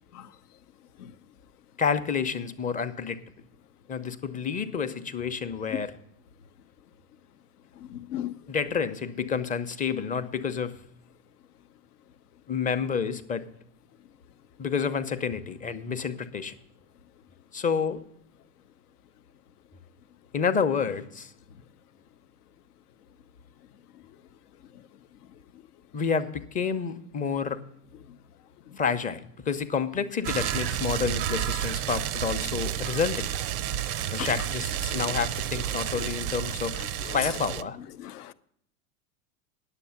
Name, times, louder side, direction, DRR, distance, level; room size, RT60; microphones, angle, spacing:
voice 1, 1.8-3.2 3.9-5.9 8.5-10.7 12.5-13.5 14.6-16.6 17.5-18.0 20.3-21.3 25.9-27.6 28.8-33.4 34.1-36.8 37.1-37.8, left 6 dB, 20° left, 0.6 m, -29 dB
voice 2, 7.9-8.3 34.2-34.3 34.9-35.1 37.0-37.2 38.0-38.3, left 12 dB, 80° left, 0.8 m, -37 dB
sound 1, 30.2-37.6, right 10 dB, 35° right, 0.4 m, -31 dB
9.9 x 7.3 x 7.0 m
hypercardioid pair, 110°, 45 cm